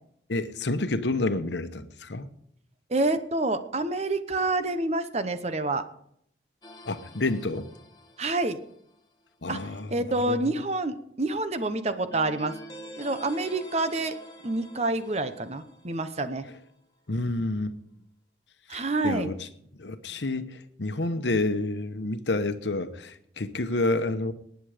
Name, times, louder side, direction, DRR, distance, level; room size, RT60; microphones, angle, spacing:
voice 1, 0.3-2.3 6.8-7.7 9.4-10.4 17.1-17.7 18.7-19.5 19.8-24.3, left 2 dB, 75° left, 1.0 m, -29 dB
voice 2, 2.9-5.8 8.2-8.6 9.5-12.5 13.0-14.1 14.4-16.5 18.7-19.3, right 2 dB, 35° right, 0.9 m, -28 dB
sound 1, 6.6-9.0 12.1-16.6, equal, 20° left, 1.7 m, -47 dB
19.0 x 9.3 x 5.0 m
head